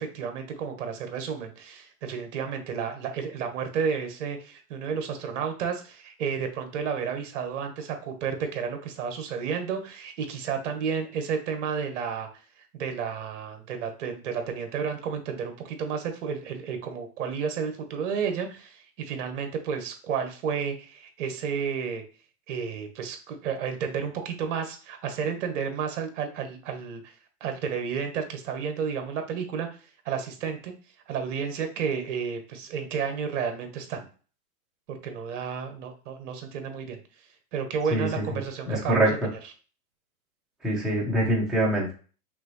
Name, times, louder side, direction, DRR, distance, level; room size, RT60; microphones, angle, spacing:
voice 1, 0.0-12.3 12.6-22.0 22.5-27.0 27.4-29.7 30.0-30.7 31.1-34.1 34.9-37.0 37.5-39.2, right 6 dB, 50° right, 6 dB, 1.3 m, -31 dB
voice 2, 37.9-38.2 38.7-39.1 40.6-41.9, right 1 dB, ahead, -5 dB, 0.8 m, -24 dB
5.9 x 2.7 x 3.0 m, 0.38 s
hypercardioid pair, 160°, 45 cm